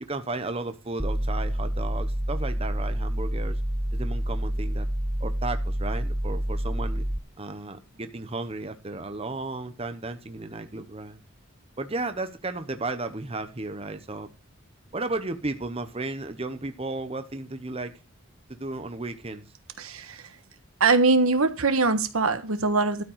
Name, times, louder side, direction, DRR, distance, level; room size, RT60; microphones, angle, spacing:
voice 1, 0.1-3.6 3.9-4.9 5.2-7.0 7.4-11.2 11.8-14.3 14.9-17.9 18.6-19.5, right 2 dB, 30° right, 0.9 m, -34 dB
sound 1, 1.0-7.2, equal, 5° right, 0.5 m, -28 dB
voice 2, 19.8-20.3 20.8-23.0, right 3 dB, 85° right, 1.3 m, -22 dB
12.5 x 5.3 x 7.3 m
head